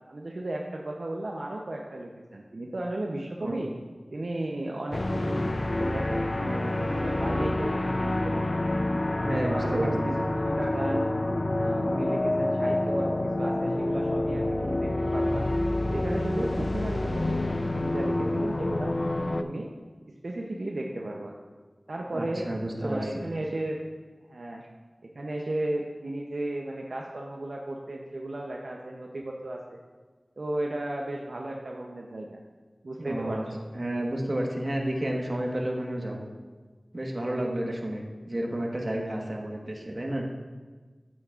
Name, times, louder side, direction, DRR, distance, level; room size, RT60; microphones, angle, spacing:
voice 1, 0.1-3.7 4.1-8.6 9.4-11.1 11.5-15.5 15.9-18.9 19.4-19.7 20.2-21.4 21.9-23.8 24.3-24.6 25.0-29.8 30.4-32.4 32.8-33.6, right 1 dB, 75° right, 0 dB, 0.6 m, -34 dB
sound 1, 4.9-19.4, left 1 dB, 55° left, 0.4 m, -27 dB
voice 2, 9.1-10.2 22.1-23.3 33.0-33.5 33.7-36.3 36.9-40.3, right 1 dB, 45° right, 0 dB, 1.3 m, -31 dB
9.4 x 8.7 x 2.4 m, 1.4 s
wide cardioid pair, 45°, 0 cm